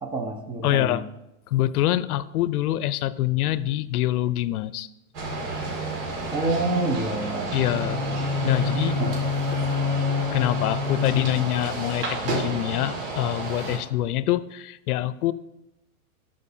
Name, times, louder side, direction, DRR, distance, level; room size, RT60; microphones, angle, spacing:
voice 1, 0.0-1.0 6.3-8.2 9.0-9.1, right 2 dB, 10° right, 4 dB, 0.6 m, -28 dB
voice 2, 0.6-1.0 1.5-4.9 7.5-8.0 8.4-9.0 9.5-9.6 10.3-15.3, left 14 dB, 85° left, 16 dB, 0.6 m, -25 dB
sound 1, 5.1-13.8, right 2 dB, 50° right, 2.2 m, -31 dB
Bowed string instrument, 7.5-11.7, left 4 dB, 15° left, 1.0 m, -27 dB
12.5 x 5.2 x 2.7 m, 0.90 s
supercardioid pair, 140°, 44 cm